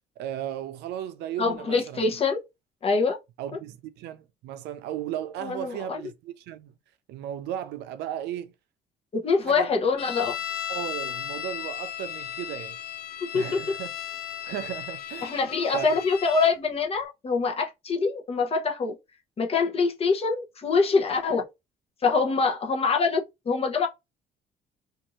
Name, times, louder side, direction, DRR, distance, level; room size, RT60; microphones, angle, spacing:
voice 1, 0.2-2.0 3.4-6.7 7.1-8.5 9.5-9.7 10.7-12.8 13.3-13.9 14.5-15.4 15.7-16.0, right 11 dB, 80° right, 0.5 m, -35 dB
voice 2, 1.4-2.4 2.8-3.2 5.4-6.0 9.1-10.3 13.2-13.6 15.2-18.9 19.4-21.4 22.0-23.9, left 4 dB, 35° left, 0.8 m, -24 dB
sound 1, 10.0-16.6, left 10 dB, 65° left, 0.5 m, -35 dB
2.6 x 2.5 x 2.9 m
cardioid pair, 110°, 17 cm